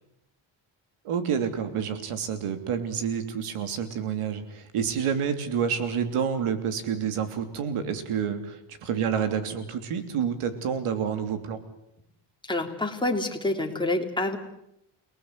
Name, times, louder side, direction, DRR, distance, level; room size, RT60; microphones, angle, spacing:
voice 1, 1.0-11.6, right 7 dB, 90° right, 9 dB, 3.2 m, -28 dB
voice 2, 12.5-14.4, left 2 dB, 10° left, 2 dB, 3.4 m, -27 dB
29.0 x 19.0 x 8.2 m, 0.80 s
cardioid pair, 110°, 50 cm